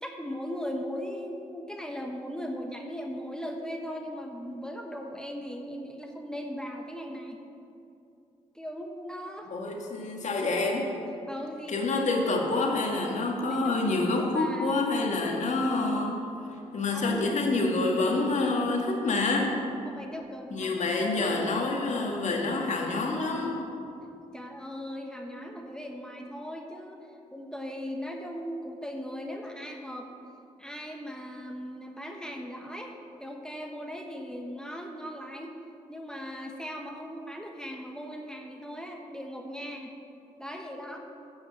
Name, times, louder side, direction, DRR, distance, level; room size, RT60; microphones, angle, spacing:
voice 1, 0.0-7.4 8.5-9.5 11.3-12.0 13.5-14.8 16.9-17.3 19.8-20.7 21.0-21.5 24.3-27.0 27.3-30.1 30.6-35.5 35.9-39.9 40.4-41.0, equal, 5° left, 2 dB, 1.1 m, -38 dB
voice 2, 9.5-10.9 11.7-16.2 16.7-19.6 20.5-23.6, left 3 dB, 60° left, 0 dB, 1.8 m, -27 dB
10.0 x 4.9 x 7.6 m, 2.7 s
supercardioid pair, 60°, 14 cm